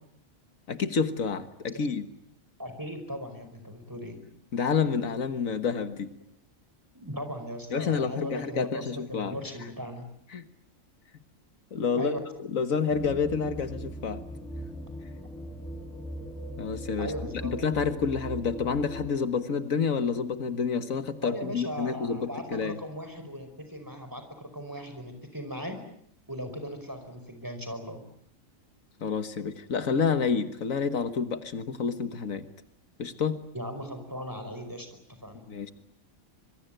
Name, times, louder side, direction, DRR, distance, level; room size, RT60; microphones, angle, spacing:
voice 1, 0.7-2.1 4.5-6.1 7.7-9.4 10.3-10.5 11.7-12.1 12.5-14.2 16.6-17.1 17.4-22.8 29.0-32.5 33.0-33.4 35.5-35.7, left 5 dB, 80° left, 10 dB, 1.9 m, -29 dB
voice 2, 2.6-4.2 6.9-8.8 9.1-10.0 11.9-12.2 17.0-17.5 21.2-25.8 26.3-28.0 33.5-34.9 35.2-35.5, equal, 15° right, 7 dB, 5.0 m, -38 dB
sound 1, 12.9-19.1, equal, ahead, 4.9 m, -39 dB
25.5 x 23.0 x 9.1 m, 0.70 s
omnidirectional pair, 1.4 m